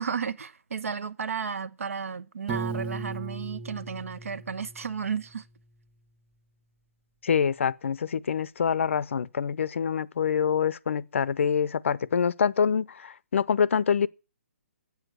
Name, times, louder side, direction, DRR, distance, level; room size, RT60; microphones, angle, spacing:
voice 1, 0.0-5.4, right 6 dB, 75° right, 1.0 m, -33 dB
Piano, 2.5-5.4, right 4 dB, 10° right, 1.2 m, -37 dB
voice 2, 7.2-14.1, left 7 dB, 60° left, 0.6 m, -26 dB
8.8 x 8.1 x 9.2 m
hypercardioid pair, 165°, 8 cm